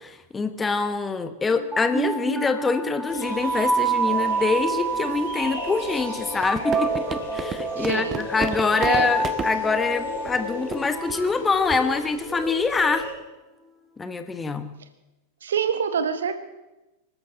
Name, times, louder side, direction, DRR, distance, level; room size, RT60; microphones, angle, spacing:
voice 1, 0.0-13.1 14.0-14.7, left 4 dB, 15° left, 10 dB, 1.2 m, -25 dB
sound 1, 1.5-12.6, right 4 dB, 5° right, 2.1 m, -29 dB
sound 2, 3.1-13.1, left 3 dB, 55° left, 6.9 m, -36 dB
sound 3, 6.3-9.5 10.3-10.4 10.7-10.8 11.1-11.3 11.7-11.9, right 6 dB, 25° right, 1.0 m, -31 dB
voice 2, 7.8-8.2 8.8-9.1 15.4-16.3, right 7 dB, 65° right, 10 dB, 1.4 m, -25 dB
24.5 x 13.5 x 4.0 m, 1.0 s
figure-of-eight pair, 90°, 0 cm